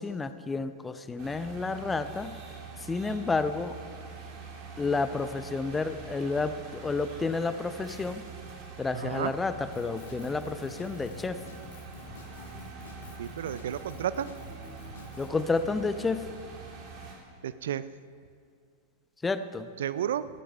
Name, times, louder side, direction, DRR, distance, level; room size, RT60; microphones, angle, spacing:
voice 1, 0.0-2.4 2.8-3.8 4.8-8.2 8.8-11.4 15.2-16.3 19.2-19.7, left 3 dB, 15° left, 12 dB, 0.7 m, -30 dB
sound 1, 1.2-17.1, right 5 dB, 45° right, 3.1 m, -45 dB
voice 2, 8.9-9.3 13.2-14.3 17.4-17.8 19.8-20.3, right 10 dB, 70° right, 16 dB, 0.4 m, -32 dB
Drum kit, 9.7-15.3, left 4 dB, 65° left, 1.5 m, -48 dB
15.5 x 10.0 x 5.5 m, 2.2 s
figure-of-eight pair, 95°, 0 cm